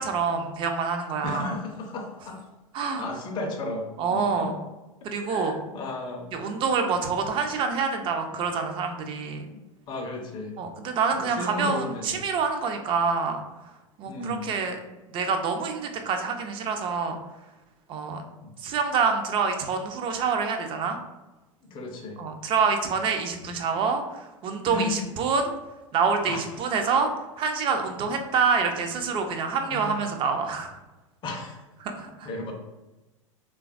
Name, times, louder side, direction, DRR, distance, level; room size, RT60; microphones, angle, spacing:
voice 1, 0.0-1.6 2.7-3.0 4.0-4.5 5.0-5.6 6.3-9.5 10.6-13.4 14.0-14.8 15.1-17.2 17.9-18.2 18.6-21.0 22.2-25.5 25.9-27.1 27.4-30.8 31.8-32.3, right 5 dB, 30° right, 5 dB, 0.4 m, -26 dB
voice 2, 1.2-2.5 3.0-4.5 5.0-6.3 9.5-9.6 9.9-10.6 11.1-12.2 14.0-14.5 18.4-18.5 21.6-22.2 24.7-25.0 26.2-26.4 29.7-30.1 31.2-31.6 32.2-32.5, left 2 dB, 25° left, 1 dB, 0.5 m, -34 dB
3.2 x 2.2 x 2.4 m, 1.1 s
figure-of-eight pair, 90°, 17 cm